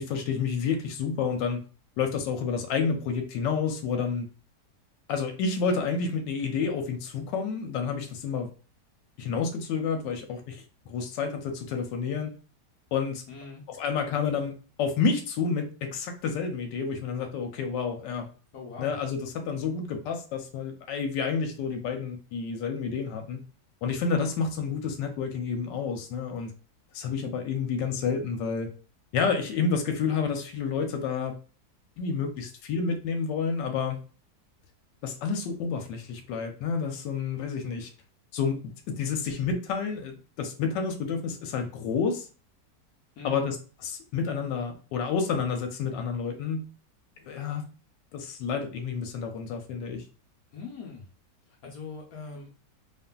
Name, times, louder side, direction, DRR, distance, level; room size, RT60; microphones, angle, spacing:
voice 1, 0.0-1.6 2.0-4.3 5.1-8.5 9.2-12.3 12.9-13.2 13.7-14.5 14.8-18.3 18.8-23.4 23.8-26.5 26.9-28.7 29.1-31.3 32.0-34.0 35.0-37.9 38.3-42.3 43.2-43.6 43.8-46.6 47.3-47.6 48.1-50.0, left 5 dB, 85° left, 4 dB, 1.2 m, -29 dB
voice 2, 13.3-13.6 18.5-19.0 43.2-43.5 50.5-51.1 51.6-52.5, left 4 dB, 65° left, -1 dB, 1.0 m, -41 dB
2.8 x 2.5 x 2.2 m, 0.36 s
omnidirectional pair, 1.9 m